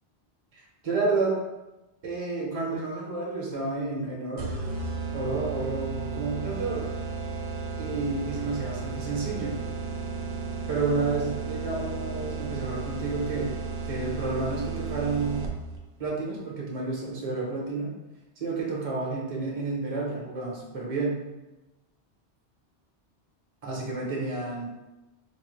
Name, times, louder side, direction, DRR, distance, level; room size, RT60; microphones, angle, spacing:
voice 1, 0.5-1.4 2.0-4.5 5.1-6.9 7.8-9.6 10.7-13.5 13.9-15.5 16.0-17.9 18.4-21.2 23.6-24.7, right 3 dB, 35° right, -3 dB, 0.8 m, -30 dB
sound 1, 4.4-15.8, right 4 dB, 70° right, 0.8 m, -34 dB
4.5 x 2.1 x 3.1 m, 1.0 s
omnidirectional pair, 1.1 m